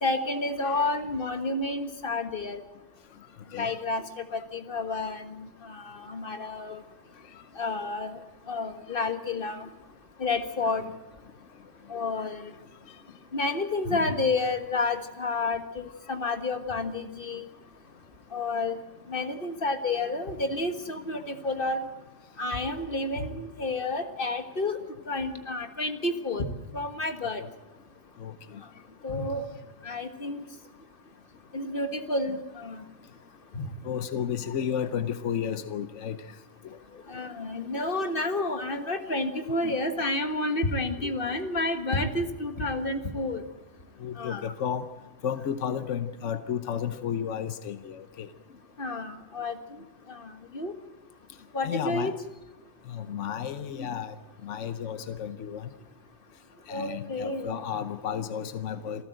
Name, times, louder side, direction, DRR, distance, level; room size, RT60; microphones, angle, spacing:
voice 1, 0.0-2.6 3.5-4.0 4.3-6.8 7.6-8.2 8.5-9.7 10.2-10.8 11.9-12.4 13.3-17.4 18.3-18.7 19.1-21.9 22.4-24.8 25.1-26.4 26.7-27.4 29.0-29.4 29.8-30.4 31.5-32.8 33.5-33.7 37.1-43.4 44.2-44.5 48.8-49.5 50.5-50.7 51.5-52.1 56.7-57.5, left 2 dB, 50° left, 7 dB, 1.7 m, -30 dB
voice 2, 3.5-3.8 10.8-10.9 12.9-13.0 27.2-27.5 28.2-28.6 32.3-32.4 33.8-36.2 36.6-36.8 39.6-39.7 42.0-42.1 44.0-44.9 45.2-48.3 51.6-52.2 52.9-54.1 54.4-55.7 56.7-59.0, left 8 dB, 80° left, 11 dB, 1.2 m, -33 dB
27.0 x 14.5 x 7.8 m, 1.1 s
omnidirectional pair, 1.2 m